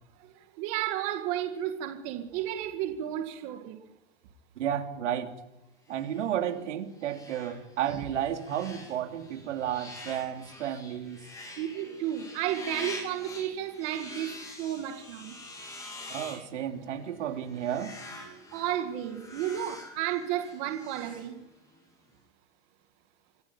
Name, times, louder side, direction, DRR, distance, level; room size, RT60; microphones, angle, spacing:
voice 1, 0.6-3.8 7.9-8.1 11.6-14.3 14.6-15.3 18.5-21.3, right 11 dB, 35° right, 5 dB, 2.0 m, -32 dB
voice 2, 4.6-5.3 5.9-11.2 16.1-17.9, right 10 dB, 85° right, 5 dB, 3.2 m, -32 dB
sound 1, 5.9-21.8, left 2 dB, 10° left, 3.2 m, -46 dB
25.5 x 14.0 x 8.8 m, 0.98 s
supercardioid pair, 175°, 35 cm